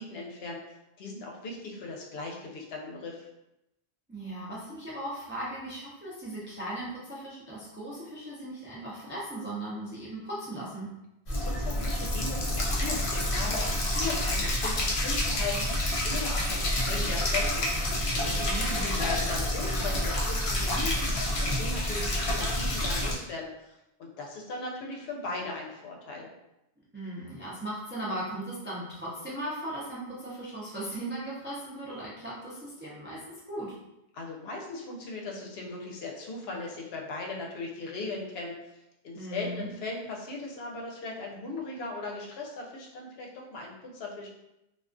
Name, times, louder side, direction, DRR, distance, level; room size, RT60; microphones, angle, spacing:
voice 1, 0.0-3.3 11.4-13.6 13.9-15.7 16.0-17.6 18.1-26.3 34.1-38.7 39.0-44.3, left 3 dB, 80° left, 0 dB, 0.8 m, -38 dB
voice 2, 4.1-10.9 18.2-18.9 26.9-33.8 39.1-39.7, right 1 dB, 20° right, -7 dB, 0.3 m, -38 dB
sound 1, 11.3-23.1, left 1 dB, 45° left, 0.4 m, -28 dB
2.3 x 2.3 x 2.4 m, 0.90 s
omnidirectional pair, 1.0 m